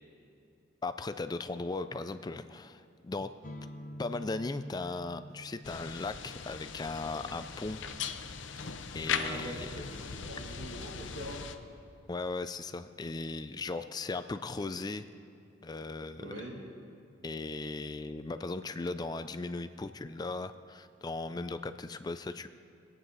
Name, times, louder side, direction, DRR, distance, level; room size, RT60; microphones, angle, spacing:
voice 1, 0.8-3.3 4.0-7.8 8.9-9.7 12.1-15.0 15.6-16.3 17.2-22.5, left 3 dB, 20° left, 11 dB, 0.3 m, -37 dB
sound 1, 3.4-11.0, equal, 40° left, 0.9 m, -50 dB
sound 2, 5.6-11.5, left 6 dB, 70° left, 0.7 m, -39 dB
voice 2, 9.2-11.5 16.2-16.6, right 1 dB, 80° right, -4 dB, 3.1 m, -43 dB
22.0 x 9.0 x 4.0 m, 2.6 s
head